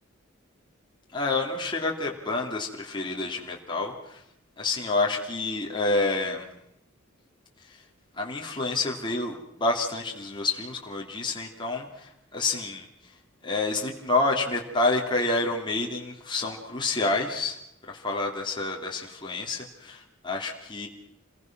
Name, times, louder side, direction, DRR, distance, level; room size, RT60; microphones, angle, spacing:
voice 1, 1.1-4.2 4.6-6.4 8.2-12.8 13.4-17.6 17.9-20.9, left 3 dB, 25° left, -1 dB, 3.2 m, -28 dB
29.0 x 21.5 x 6.1 m, 0.81 s
head